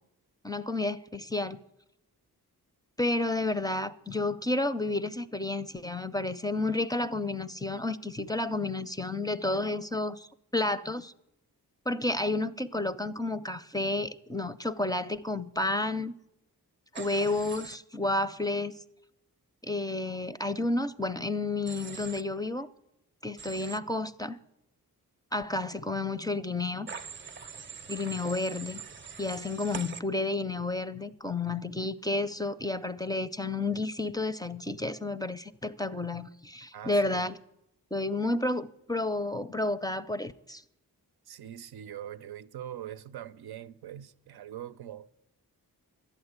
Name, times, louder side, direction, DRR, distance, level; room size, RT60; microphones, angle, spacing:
voice 1, 0.4-1.6 3.0-11.1 11.9-16.1 16.9-18.7 19.6-22.7 23.2-24.4 25.3-26.9 27.9-28.8 29.2-37.3 37.9-40.6, left 2 dB, 10° left, 0.4 m, -31 dB
Human voice / Train, 16.9-17.8 21.7-22.2 23.4-23.8 26.9-30.0, right 5 dB, 30° right, 0.6 m, -42 dB
voice 2, 36.7-37.3 41.3-45.1, right 11 dB, 85° right, 0.6 m, -42 dB
11.5 x 8.9 x 8.1 m
cardioid pair, 85°, 37 cm